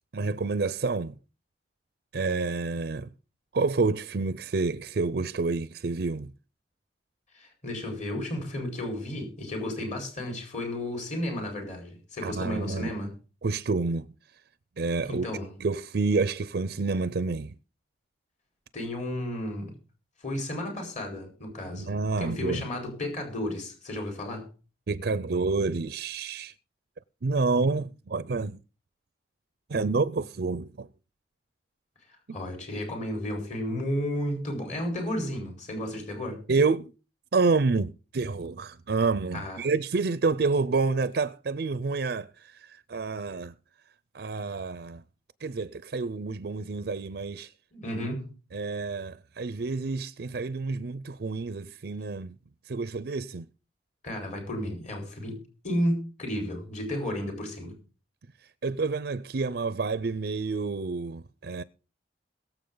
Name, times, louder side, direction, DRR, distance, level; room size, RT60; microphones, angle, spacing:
voice 1, 0.1-1.1 2.1-3.1 3.5-6.3 12.2-12.9 13.4-14.1 14.8-15.3 15.6-17.5 21.7-22.7 24.9-26.5 27.2-28.6 29.7-30.9 36.5-36.9 37.3-43.5 44.1-45.0 45.4-47.5 48.5-52.4 52.7-53.5 58.6-61.6, right 4 dB, 65° right, 0.5 m, -28 dB
voice 2, 7.3-13.1 15.0-15.5 18.7-19.7 20.2-24.5 32.3-36.4 39.3-39.6 47.7-48.3 54.0-57.8, left 1 dB, 45° left, 4.5 m, -33 dB
22.0 x 7.3 x 3.9 m
head